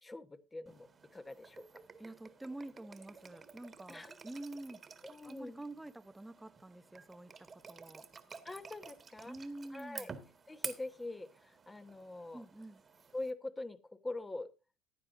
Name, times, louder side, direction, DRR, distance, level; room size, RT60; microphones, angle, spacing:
voice 1, 0.0-0.9 1.1-1.8 3.9-4.2 5.0-5.6 8.4-9.4 9.7-10.1 10.5-12.4 13.1-14.5, left 2 dB, 15° left, 1.1 m, -44 dB
sound 1, 0.7-13.3, right 5 dB, 30° right, 1.7 m, -51 dB
voice 2, 2.0-4.8 5.2-8.1 9.3-10.1 12.3-12.8, right 2 dB, 10° right, 0.8 m, -48 dB
15.5 x 9.9 x 2.6 m
supercardioid pair, 105°, 0 cm